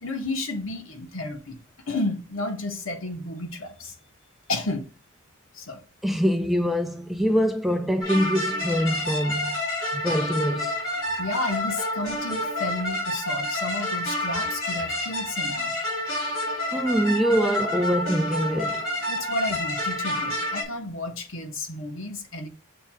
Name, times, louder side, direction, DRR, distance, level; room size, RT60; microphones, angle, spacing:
voice 1, 0.0-1.6 1.9-3.9 4.5-4.8 5.5-5.8 11.2-15.8 19.1-22.5, left 2 dB, 70° left, 1.4 m, -32 dB
voice 2, 6.0-9.6 9.9-10.7 16.7-18.8, equal, ahead, 0.4 m, -24 dB
sound 1, 8.0-20.6, left 1 dB, 85° left, 3.3 m, -29 dB
6.8 x 3.3 x 4.8 m
head